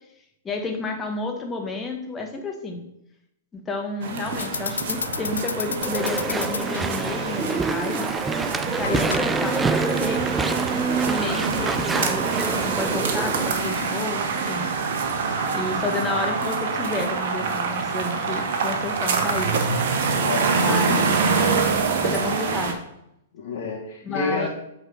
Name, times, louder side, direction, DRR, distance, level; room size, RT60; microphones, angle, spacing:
voice 1, 0.4-2.8 3.5-8.1 8.6-10.2 11.1-14.7 15.5-19.7 20.5-21.6 22.0-22.8 24.0-24.5, left 3 dB, 20° left, 3 dB, 1.4 m, -31 dB
sound 1, 4.0-22.7, right 5 dB, 55° right, 1.1 m, -26 dB
sound 2, 4.3-14.4, left 5 dB, 75° left, 0.4 m, -35 dB
Walk footsteps / Chatter / Squeak, 5.8-13.5, right 4 dB, 10° right, 0.3 m, -26 dB
voice 2, 20.2-21.3 23.3-24.5, left 4 dB, 60° left, -4 dB, 1.6 m, -29 dB
7.9 x 4.1 x 5.1 m, 0.81 s
figure-of-eight pair, 110°, 0 cm